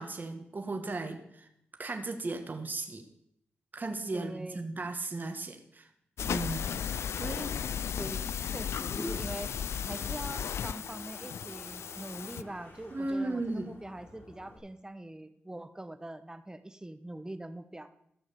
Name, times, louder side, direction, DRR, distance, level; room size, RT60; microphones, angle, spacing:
voice 1, 0.0-1.5 1.8-3.1 3.7-5.9 6.3-6.8 7.2-7.5 12.9-13.7, right 2 dB, 40° right, 5 dB, 1.6 m, -36 dB
voice 2, 4.1-4.7 8.0-9.5 9.9-17.9, right 1 dB, 15° right, 10 dB, 1.2 m, -43 dB
sound 1, 6.2-12.4, left 8 dB, 75° left, 0.4 m, -35 dB
Toilet flush, 8.4-14.6, left 1 dB, 55° left, 5.6 m, -47 dB
14.5 x 6.3 x 7.1 m, 0.76 s
cardioid pair, 50°, 5 cm